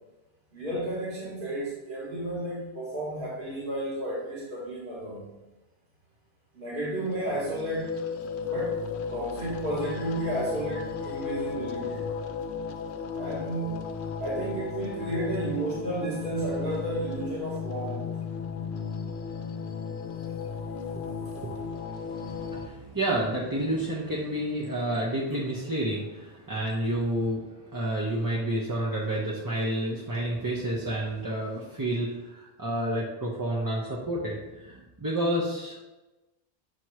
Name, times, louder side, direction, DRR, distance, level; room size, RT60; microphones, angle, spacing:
voice 1, 0.5-5.2 6.5-8.0 8.5-8.8 9.1-12.0 13.1-18.2, right 1 dB, 55° right, -7 dB, 1.7 m, -32 dB
sound 1, 7.0-22.7, left 6 dB, 90° left, 0.9 m, -35 dB
voice 2, 22.0-35.8, right 1 dB, 25° right, -4 dB, 0.7 m, -30 dB
7.7 x 2.9 x 4.7 m, 1.1 s
omnidirectional pair, 1.1 m